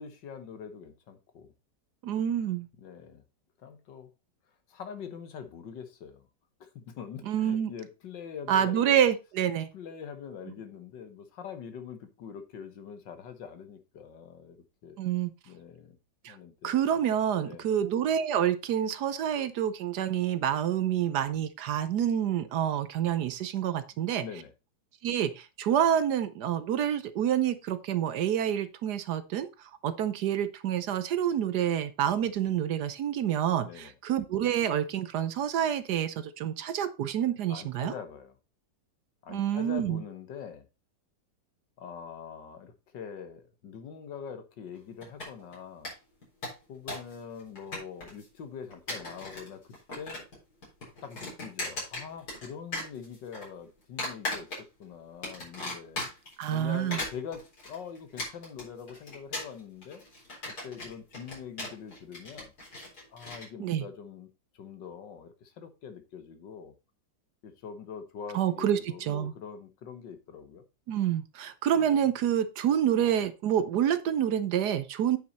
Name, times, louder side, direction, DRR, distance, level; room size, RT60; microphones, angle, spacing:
voice 1, 0.0-1.5 2.8-3.2 3.6-4.1 4.7-6.3 6.6-9.0 9.7-14.6 14.8-15.0 15.5-16.0 16.3-16.8 17.4-17.7 23.9-24.5 33.6-33.9 37.5-38.4 39.2-40.7 41.8-45.9 46.7-50.2 51.0-56.0 56.5-60.0 60.5-62.5 63.1-66.7 67.4-70.6, left 7 dB, 75° left, 1.9 m, -44 dB
voice 2, 2.0-2.7 7.3-7.7 8.5-9.7 15.0-15.3 16.2-16.4 16.6-24.2 25.0-37.9 39.3-40.0 56.4-57.0 63.6-63.9 68.3-69.3 70.9-75.2, right 10 dB, 70° right, 1.2 m, -28 dB
sound 1, 45.0-45.5 45.8-45.9 46.2-47.1 47.4-48.2 48.7-49.5 49.7-50.4 50.6-52.5 52.7-53.4 54.0-54.8 55.2-56.3 56.7-63.4, left 2 dB, 55° left, 4.6 m, -37 dB
8.7 x 5.9 x 4.1 m
omnidirectional pair, 2.0 m